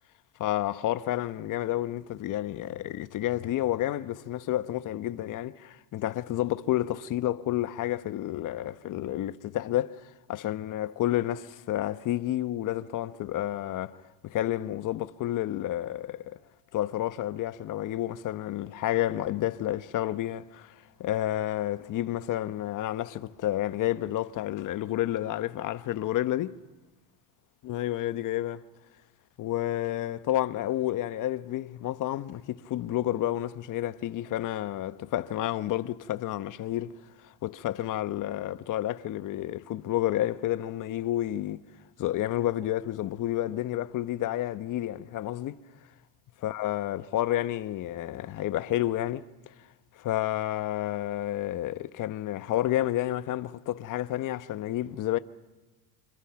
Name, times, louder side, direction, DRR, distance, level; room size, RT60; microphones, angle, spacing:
voice 1, 0.4-16.4 16.7-20.7 21.0-26.6 27.6-28.6 29.4-36.9 37.2-41.6 42.0-45.6 46.4-49.3 50.0-55.2, left 13 dB, 45° left, 1.0 m, -30 dB
27.5 x 26.0 x 5.9 m
supercardioid pair, 115°, 45 cm